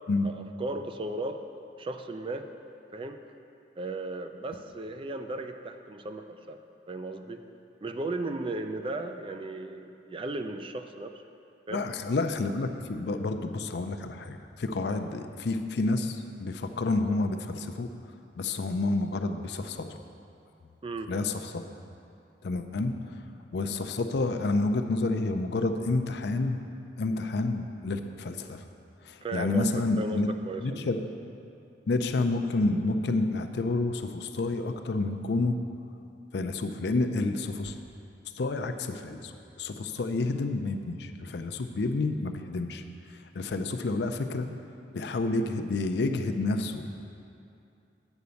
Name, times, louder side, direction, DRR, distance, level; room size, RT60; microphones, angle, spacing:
voice 1, 0.2-1.4 1.8-2.5 2.9-3.2 3.8-6.6 6.9-7.5 7.8-11.1 11.7-11.8 20.8-21.2 29.2-29.7 30.0-30.9, right 2 dB, 30° right, 7 dB, 0.4 m, -36 dB
voice 2, 11.7-17.9 18.4-20.0 21.1-21.6 22.4-23.2 23.5-26.6 27.0-28.6 29.0-30.3 30.6-31.0 31.9-35.6 36.3-37.8 38.3-42.8 43.1-44.5 44.9-46.9, left 2 dB, 65° left, 7 dB, 0.5 m, -29 dB
8.0 x 5.1 x 6.9 m, 2.6 s
head